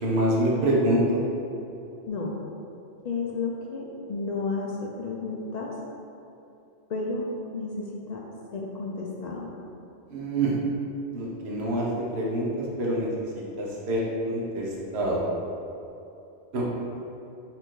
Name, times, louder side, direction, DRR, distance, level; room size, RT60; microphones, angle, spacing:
voice 1, 0.0-1.0 10.1-10.5 11.1-11.9 12.1-13.1 13.6-15.2 16.5-16.6, right 1 dB, 65° right, -4 dB, 1.1 m, -26 dB
voice 2, 3.0-5.7 6.9-7.2 7.5-8.2 8.5-9.5, left 3 dB, 60° left, -2 dB, 0.4 m, -32 dB
4.3 x 2.6 x 4.4 m, 2.8 s
omnidirectional pair, 1.2 m